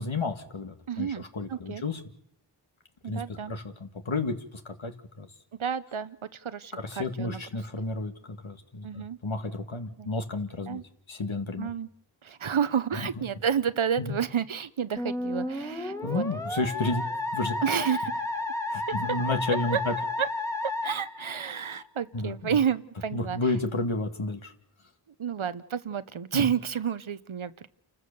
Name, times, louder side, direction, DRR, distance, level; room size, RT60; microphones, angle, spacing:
voice 1, 0.0-2.0 3.1-5.3 6.7-10.8 11.1-11.7 13.0-13.1 14.0-14.2 16.0-17.1 17.3-17.6 18.7-19.9 22.1-22.6 23.1-24.5 26.3-26.4, left 3 dB, 70° left, 6 dB, 2.1 m, -31 dB
voice 2, 0.9-1.8 3.0-3.5 5.6-7.4 8.8-9.2 10.0-10.1 10.7-10.8 11.6-11.9 12.2-16.2 17.6-18.1 19.1-19.2 19.7-19.8 20.2-20.3 20.6-23.4 25.2-27.7, right 8 dB, 80° right, 14 dB, 0.9 m, -30 dB
Musical instrument, 15.0-21.8, left 2 dB, 5° left, 1.8 m, -32 dB
29.0 x 14.5 x 7.0 m, 0.80 s
wide cardioid pair, 50°, 48 cm